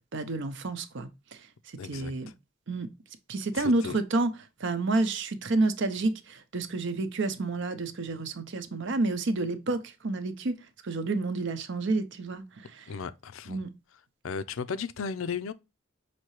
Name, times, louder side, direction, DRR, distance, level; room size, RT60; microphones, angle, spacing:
voice 1, 0.1-1.4 1.9-2.3 2.7-2.9 3.3-4.3 4.6-10.6 10.8-12.8 13.5-13.7, right 2 dB, 60° right, 0.6 m, -29 dB
voice 2, 1.8-2.3 3.5-4.0 12.9-13.6 14.2-15.5, left 5 dB, 75° left, 0.5 m, -35 dB
5.8 x 2.8 x 3.0 m
head